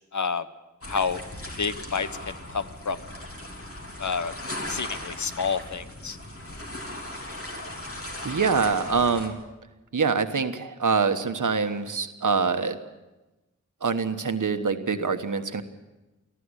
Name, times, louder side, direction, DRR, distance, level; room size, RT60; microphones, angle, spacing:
voice 1, 0.1-0.4 0.9-1.2 1.6-3.0 4.0-4.3 4.7-6.2, left 5 dB, 70° left, 12 dB, 1.0 m, -29 dB
sound 1, 0.8-9.3, left 1 dB, 50° left, 3.7 m, -38 dB
voice 2, 8.2-9.3 9.9-12.8 13.8-15.6, right 5 dB, 80° right, 8 dB, 1.3 m, -25 dB
19.0 x 14.0 x 9.9 m, 1.1 s
wide cardioid pair, 60°, 30 cm